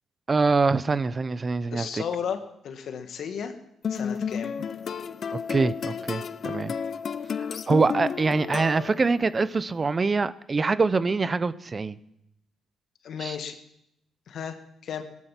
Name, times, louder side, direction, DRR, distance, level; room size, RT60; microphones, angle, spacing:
voice 1, 0.3-2.0 5.5-6.7 7.7-12.0 13.2-13.4, right 4 dB, 35° right, 15 dB, 0.8 m, -24 dB
voice 2, 1.7-3.5 3.9-4.5 13.0-13.6 14.3-14.6 14.8-15.0, left 7 dB, 70° left, 7 dB, 1.9 m, -34 dB
sound 1, 3.8-9.2, left 6 dB, 55° left, 0.7 m, -32 dB
17.5 x 12.5 x 6.0 m, 0.78 s
supercardioid pair, 70°, 0 cm